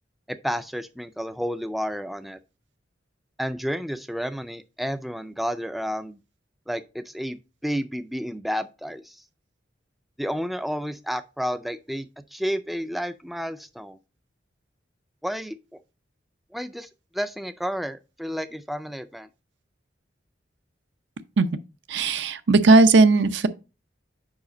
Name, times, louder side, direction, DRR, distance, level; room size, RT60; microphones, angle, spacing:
voice 1, 0.3-2.4 3.4-6.2 6.7-9.2 10.2-14.0 15.2-15.8 16.5-16.9 17.1-19.3, equal, ahead, 0.3 m, -31 dB
voice 2, 21.9-23.5, right 3 dB, 75° right, 0.6 m, -17 dB
5.0 x 4.9 x 5.1 m
head